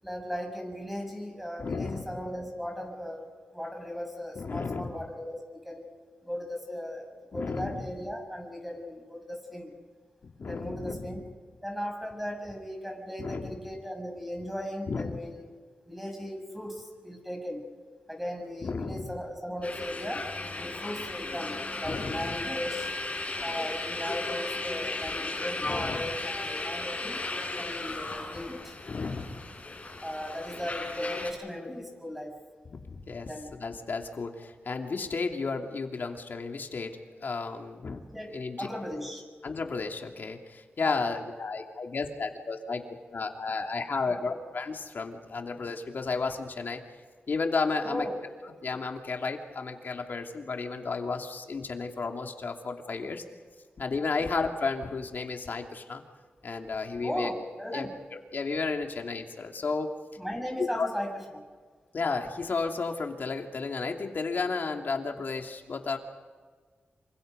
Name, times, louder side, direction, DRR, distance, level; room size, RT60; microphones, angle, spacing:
voice 1, 0.0-5.4 5.6-5.9 6.2-7.1 7.3-9.7 10.4-11.2 11.6-15.5 15.9-17.6 18.1-20.3 20.6-22.9 23.4-27.2 27.6-28.7 30.0-32.4 33.2-33.5 38.1-39.2 40.8-41.0 44.1-44.4 47.8-48.2 57.0-58.0 60.2-61.4, equal, 5° right, 2 dB, 7.1 m, -37 dB
voice 2, 1.6-2.2 4.3-5.0 7.3-7.8 10.4-11.3 13.2-13.5 14.9-15.2 18.6-19.1 21.8-22.5 25.6-26.1 28.9-29.4 32.7-33.3 33.6-38.0 38.3-38.7 39.4-42.8 43.1-46.8 47.3-48.0 48.6-53.2 53.8-56.0 56.4-57.3 57.7-57.9 58.3-59.9 60.6-60.9 61.9-66.0, left 4 dB, 60° left, 3 dB, 2.9 m, -33 dB
sound 1, 19.6-31.3, left 2 dB, 35° left, 6.0 m, -35 dB
28.0 x 25.5 x 5.3 m, 1.5 s
cardioid pair, 75°, 4 cm